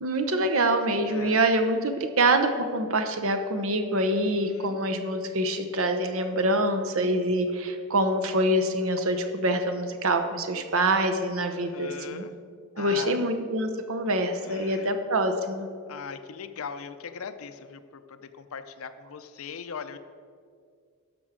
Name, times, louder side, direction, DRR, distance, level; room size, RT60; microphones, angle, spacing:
voice 1, 0.0-12.2 12.8-15.7, right 1 dB, 65° right, 7 dB, 0.9 m, -25 dB
voice 2, 1.1-1.4 4.2-4.8 11.5-12.3 12.8-13.3 14.4-14.9 15.9-20.0, left 6 dB, 70° left, 11 dB, 0.5 m, -40 dB
12.5 x 6.0 x 5.0 m, 2.2 s
head